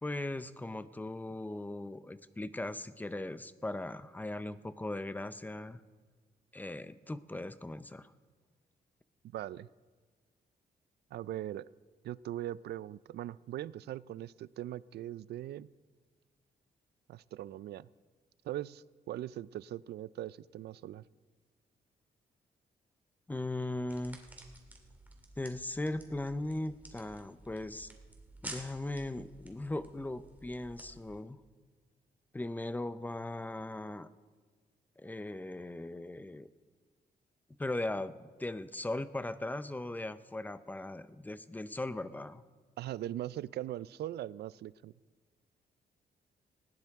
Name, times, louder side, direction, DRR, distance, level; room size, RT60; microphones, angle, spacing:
voice 1, 0.0-5.8 6.5-8.1 23.3-24.2 25.4-27.9 28.4-31.4 32.3-34.1 35.0-36.5 37.6-42.4, left 2 dB, 10° left, 14 dB, 0.5 m, -38 dB
voice 2, 9.3-9.7 11.1-11.7 12.0-15.7 17.1-17.9 18.4-21.0 42.8-44.9, right 13 dB, 80° right, 20 dB, 0.4 m, -40 dB
sound 1, 23.9-31.2, right 1 dB, 10° right, 2.2 m, -52 dB
19.0 x 16.5 x 3.6 m, 1.5 s
cardioid pair, 130°, 17 cm